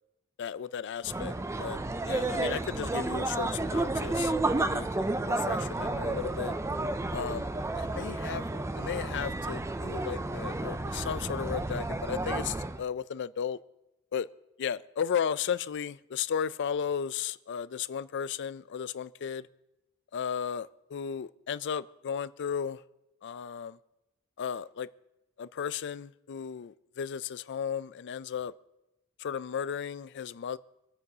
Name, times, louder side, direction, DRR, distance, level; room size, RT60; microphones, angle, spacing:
voice 1, 0.4-1.8 2.0-6.5 7.1-7.5 7.8-13.6 14.1-14.3 14.6-19.5 20.1-22.8 23.2-23.8 24.4-24.9 25.4-28.5 29.2-30.6, left 7 dB, 55° left, 0.4 m, -35 dB
sound 1, 1.0-12.8, right 2 dB, 15° right, 0.4 m, -31 dB
26.5 x 9.3 x 2.8 m
head